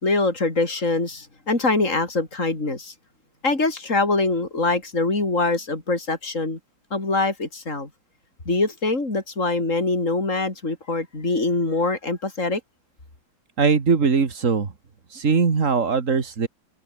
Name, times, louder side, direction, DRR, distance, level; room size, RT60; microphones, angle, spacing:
voice 1, 0.0-2.9 3.4-6.6 6.9-7.9 8.5-12.6, left 3 dB, 40° left, 5.6 m, -23 dB
voice 2, 13.6-14.7 15.1-16.5, right 5 dB, 40° right, 2.3 m, -20 dB
open air
omnidirectional pair, 2.0 m